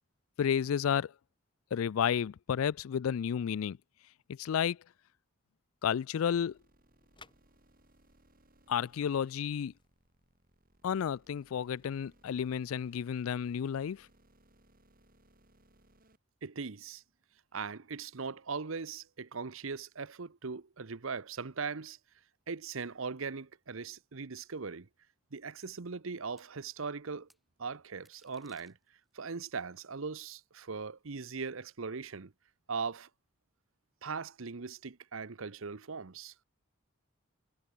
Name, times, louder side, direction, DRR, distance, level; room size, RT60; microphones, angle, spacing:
voice 1, 0.4-1.1 1.7-3.8 4.4-4.8 5.8-6.6 8.7-9.7 10.8-14.1, left 8 dB, 80° left, 0.4 m, -31 dB
sound 1, 6.1-11.2, left 4 dB, 25° left, 5.6 m, -65 dB
sound 2, 6.4-16.2, right 1 dB, 45° right, 7.2 m, -66 dB
voice 2, 16.4-17.0 17.5-22.0 22.5-24.9 25.3-27.3 27.6-28.8 29.1-32.3 32.7-33.1 34.0-36.3, right 5 dB, 70° right, 0.9 m, -39 dB
sound 3, 25.6-25.7 26.4-26.5 27.3-27.4 27.9-29.1, equal, ahead, 2.5 m, -66 dB
head